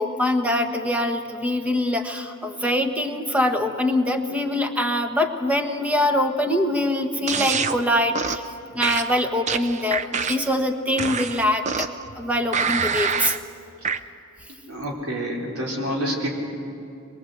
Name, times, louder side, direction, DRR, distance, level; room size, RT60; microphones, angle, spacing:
voice 1, 0.0-8.4 8.7-11.9 12.1-13.3, left 1 dB, 5° right, 5 dB, 1.3 m, -23 dB
sound 1, 7.3-7.8 8.1-8.5 8.8-10.5 11.0-12.0 12.5-13.4 13.8-14.0, right 6 dB, 35° right, 0.6 m, -26 dB
voice 2, 14.7-16.3, equal, 75° right, -1 dB, 3.9 m, -28 dB
22.5 x 22.5 x 8.0 m, 2.7 s
head